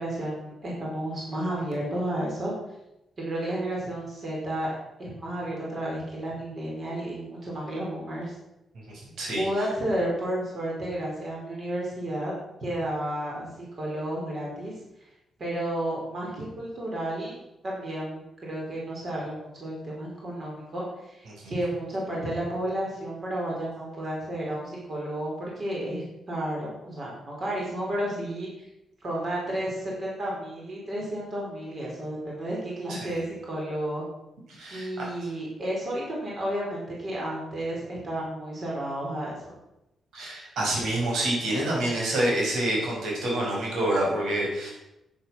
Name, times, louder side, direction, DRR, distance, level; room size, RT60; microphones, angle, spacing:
voice 1, 0.0-2.5 3.2-4.7 5.0-8.3 9.4-12.3 12.6-14.7 15.4-17.4 17.6-28.7 29.0-34.1 34.7-39.4, right 1 dB, 35° right, -4 dB, 4.7 m, -32 dB
voice 2, 8.9-9.4 21.3-21.5 32.9-33.2 34.5-35.1 40.1-44.7, right 1 dB, 90° right, -3 dB, 5.7 m, -28 dB
11.0 x 9.9 x 6.4 m, 0.89 s
wide cardioid pair, 175°, 0 cm